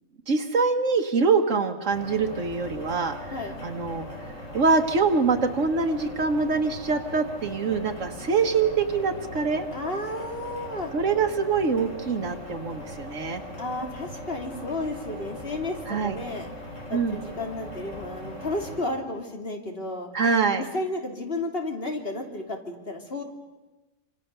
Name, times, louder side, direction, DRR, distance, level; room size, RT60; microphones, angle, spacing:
voice 1, 0.3-3.2 3.6-4.0 4.5-9.7 10.9-13.4 15.9-16.2 16.9-17.2 20.1-20.6, right 4 dB, 80° right, 4 dB, 1.7 m, -24 dB
sound 1, 1.9-18.8, equal, 90° left, 4.3 m, -40 dB
voice 2, 9.7-10.9 13.6-16.5 16.9-20.1 20.7-23.2, left 2 dB, 50° left, 3 dB, 3.2 m, -32 dB
27.0 x 26.5 x 6.8 m, 1.1 s
omnidirectional pair, 1.3 m